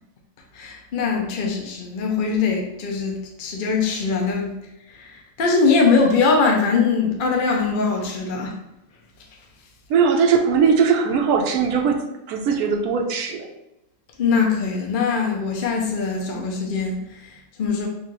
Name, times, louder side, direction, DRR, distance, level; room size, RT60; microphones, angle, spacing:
voice 1, 0.5-4.5 4.9-8.6 14.2-17.9, left 4 dB, 50° left, 0 dB, 0.6 m, -22 dB
voice 2, 9.9-13.5, right 6 dB, 80° right, 3 dB, 1.1 m, -20 dB
6.5 x 2.4 x 3.0 m, 0.89 s
omnidirectional pair, 1.6 m